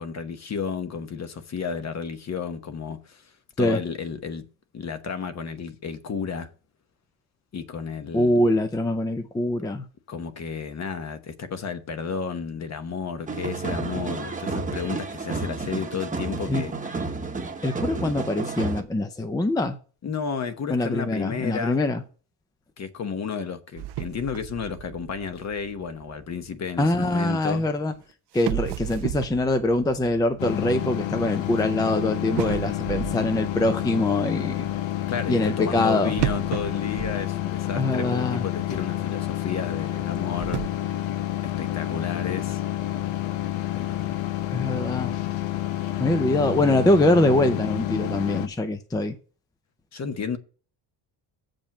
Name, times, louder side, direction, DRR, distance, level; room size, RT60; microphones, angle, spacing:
voice 1, 0.0-3.3 3.6-4.4 4.7-6.5 7.5-8.4 10.1-16.7 20.0-21.8 22.8-27.6 35.1-40.6 41.4-42.6 43.7-44.1 49.9-50.4, left 6 dB, 35° left, 1.0 m, -32 dB
voice 2, 8.1-9.8 16.5-16.6 17.6-19.8 20.7-22.0 26.8-27.9 28.3-34.7 35.3-36.1 37.7-38.4 44.5-45.1 46.0-49.2, left 1 dB, 10° left, 0.5 m, -23 dB
sound 1, 13.3-18.8, right 3 dB, 15° right, 1.0 m, -31 dB
sound 2, 23.8-26.9 27.9-28.0 28.4-31.7 32.4-34.2 36.1-37.9 38.2-38.3 38.9-39.0 40.0-40.7, right 16 dB, 65° right, 0.5 m, -34 dB
sound 3, 30.4-48.5, left 14 dB, 80° left, 0.9 m, -29 dB
7.3 x 5.2 x 7.0 m
cardioid pair, 135°, 45 cm